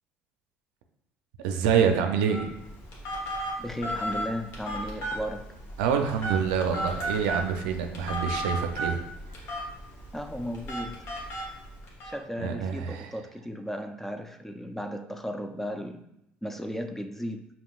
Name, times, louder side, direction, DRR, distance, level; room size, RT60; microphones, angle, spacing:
voice 1, 1.4-2.5 5.8-9.0 12.4-13.0, right 7 dB, 90° right, 5 dB, 0.4 m, -26 dB
Telephone, 2.3-12.1, right 1 dB, 65° left, 1.1 m, -34 dB
voice 2, 3.6-5.6 10.1-11.1 11.5-11.6 12.0-16.1 16.4-17.5, equal, 5° left, 7 dB, 0.4 m, -35 dB
5.2 x 2.9 x 2.3 m, 0.82 s
supercardioid pair, 90°, 5 cm